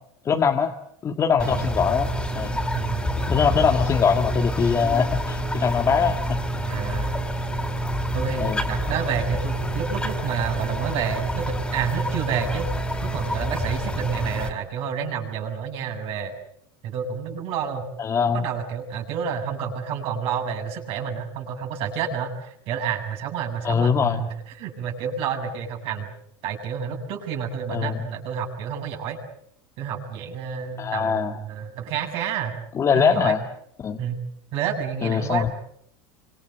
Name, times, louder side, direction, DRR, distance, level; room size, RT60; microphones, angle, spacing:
voice 1, 0.3-0.7 1.0-2.1 2.4-2.6 3.3-6.4 8.4-8.6 18.0-18.4 23.6-24.2 27.7-28.0 30.8-31.4 32.7-33.4 33.8-34.0 35.0-35.5, left 6 dB, 25° left, 3 dB, 1.9 m, -22 dB
sound 1, 1.4-14.5, equal, 5° left, 4.4 m, -27 dB
voice 2, 2.7-3.1 6.7-7.2 8.1-12.7 13.0-16.3 16.8-17.9 18.3-26.1 26.4-29.2 29.8-32.6 32.9-33.4 34.0-34.2 34.5-35.5, right 7 dB, 50° right, 2 dB, 7.6 m, -29 dB
28.0 x 26.0 x 8.0 m, 0.68 s
supercardioid pair, 135°, 12 cm